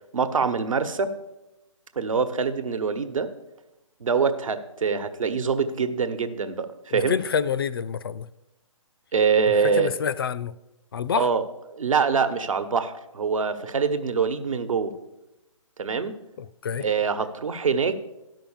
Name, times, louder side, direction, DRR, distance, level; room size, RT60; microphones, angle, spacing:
voice 1, 0.1-1.1 2.0-3.3 4.0-7.2 9.1-9.9 11.2-11.4 11.7-14.9 15.8-16.1 16.8-18.0, right 5 dB, 75° right, 1.1 m, -24 dB
voice 2, 6.9-8.3 9.8-10.5 10.9-11.3 16.4-16.8, left 7 dB, 45° left, 0.4 m, -27 dB
12.0 x 5.8 x 7.2 m
hypercardioid pair, 155°, 17 cm